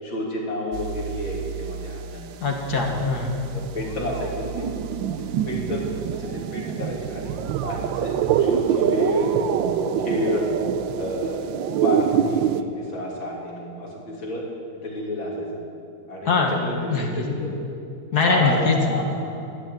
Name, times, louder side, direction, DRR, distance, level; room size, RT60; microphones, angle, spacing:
voice 1, 0.0-2.3 3.5-4.7 5.2-5.9 6.1-7.3 7.6-9.3 10.0-10.5 11.0-11.4 11.8-14.4 14.8-15.6 16.1-17.5 18.2-19.4, left 1 dB, 85° left, -3 dB, 3.8 m, -30 dB
sound 1, 0.7-2.2 2.5-12.6, right 9 dB, 80° right, 1.4 m, -26 dB
voice 2, 2.4-3.4 16.3-16.6 16.9-17.2 18.1-18.8, left 4 dB, 55° left, 1 dB, 2.1 m, -22 dB
12.5 x 12.0 x 9.1 m, 2.6 s
omnidirectional pair, 2.1 m